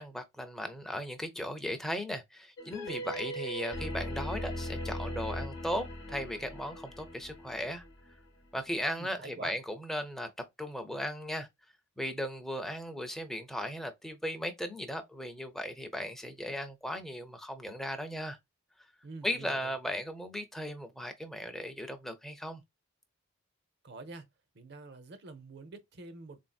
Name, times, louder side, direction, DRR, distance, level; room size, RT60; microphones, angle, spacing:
voice 1, 0.0-7.9 8.5-10.3 10.6-11.5 12.0-18.4 19.2-22.6, equal, ahead, 0.4 m, -37 dB
sound 1, 2.6-8.3, equal, 60° left, 0.8 m, -39 dB
voice 2, 8.9-9.6 19.0-19.7 23.8-24.3 24.5-26.4, right 3 dB, 55° right, 0.6 m, -46 dB
3.7 x 2.6 x 2.2 m
head